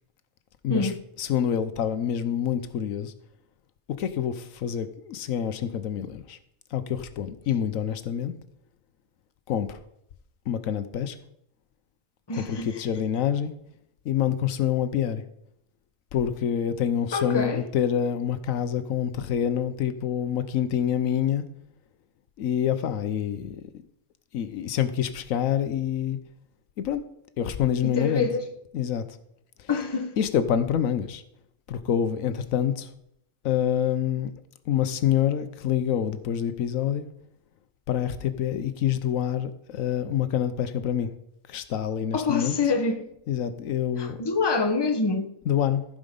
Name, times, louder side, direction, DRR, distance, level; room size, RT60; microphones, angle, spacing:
voice 1, 1.2-3.1 4.0-6.4 6.7-8.3 9.5-9.8 10.5-11.2 12.4-13.5 14.0-15.2 16.1-21.4 22.4-23.7 24.3-26.2 26.8-27.0 27.4-28.3 28.7-29.0 29.6-29.7 30.2-31.2 31.7-32.9 33.4-34.3 34.7-37.1 37.9-41.1 41.5-42.5 43.3-44.2 45.5-45.9, left 9 dB, 80° left, 1.1 m, -26 dB
voice 2, 12.3-12.8 17.1-17.6 27.8-28.5 29.7-30.2 42.1-43.0 44.0-45.3, left 4 dB, 20° left, 0.9 m, -26 dB
15.0 x 5.1 x 5.2 m
omnidirectional pair, 1.4 m